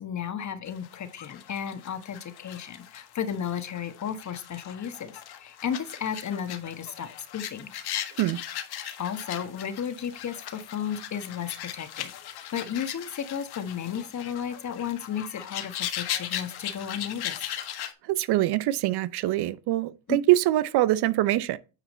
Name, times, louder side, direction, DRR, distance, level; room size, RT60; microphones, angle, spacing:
voice 1, 0.0-7.7 9.0-12.1 12.5-17.5 20.1-20.2, left 8 dB, 40° left, 1.5 m, -34 dB
sound 1, 0.7-17.9, left 10 dB, 55° left, 1.6 m, -38 dB
voice 2, 18.0-21.6, right 15 dB, 60° right, 0.7 m, -24 dB
9.4 x 4.9 x 4.3 m
supercardioid pair, 80°, 46 cm